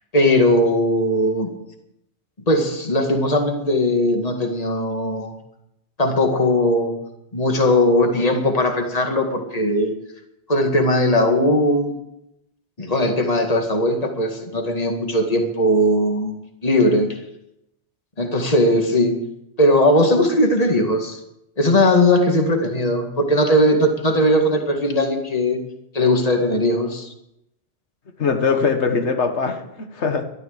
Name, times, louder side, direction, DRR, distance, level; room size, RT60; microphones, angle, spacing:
voice 1, 0.1-1.5 2.5-5.3 6.0-6.9 7.3-9.9 10.5-11.9 12.8-16.3 16.6-17.1 18.2-19.1 19.6-21.2 21.6-25.6 25.9-27.1, left 1 dB, 35° left, 3 dB, 2.1 m, -18 dB
voice 2, 28.2-30.2, left 5 dB, 80° left, 7 dB, 1.7 m, -21 dB
13.5 x 12.5 x 6.7 m, 0.83 s
omnidirectional pair, 1.2 m